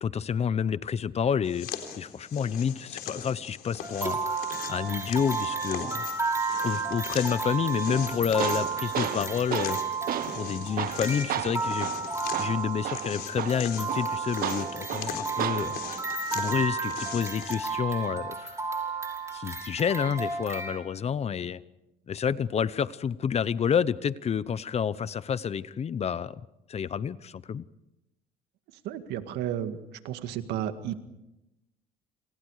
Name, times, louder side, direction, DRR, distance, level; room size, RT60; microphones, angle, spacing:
voice 1, 0.0-1.7 2.0-6.3 6.6-9.8 10.3-11.9 12.4-16.0 16.3-18.6 19.3-21.6 22.1-26.3 26.7-27.6, left 7 dB, 40° left, 17 dB, 0.9 m, -29 dB
sound 1, 1.4-17.6, left 8 dB, 65° left, 3.9 m, -40 dB
sound 2, 3.8-20.8, right 4 dB, 15° right, 5.5 m, -33 dB
Tools, 7.9-15.9, right 11 dB, 60° right, 1.3 m, -34 dB
voice 2, 28.8-29.8 30.0-30.9, right 10 dB, 90° right, 9 dB, 1.9 m, -32 dB
28.0 x 27.5 x 4.9 m, 0.91 s
cardioid pair, 110°, 17 cm